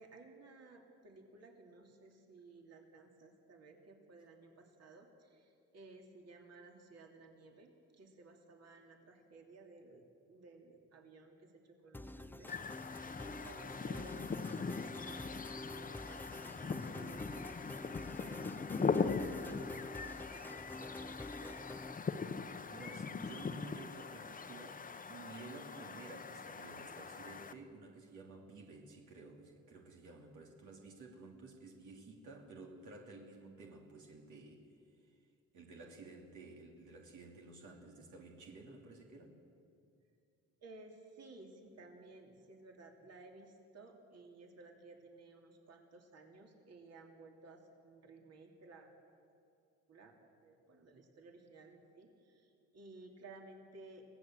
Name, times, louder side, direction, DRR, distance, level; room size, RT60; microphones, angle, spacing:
voice 1, 0.0-12.5 13.2-21.6 40.6-49.3 49.9-54.0, right 3 dB, 55° right, 2 dB, 3.0 m, -57 dB
sound 1, 11.9-22.0, left 2 dB, 5° left, 0.6 m, -48 dB
sound 2, 12.5-27.5, left 5 dB, 25° left, 0.9 m, -41 dB
voice 2, 22.7-34.7 35.0-35.2 35.5-39.4, right 3 dB, 75° right, 0 dB, 2.9 m, -53 dB
25.0 x 17.0 x 7.6 m, 2.6 s
cardioid pair, 90°, 30 cm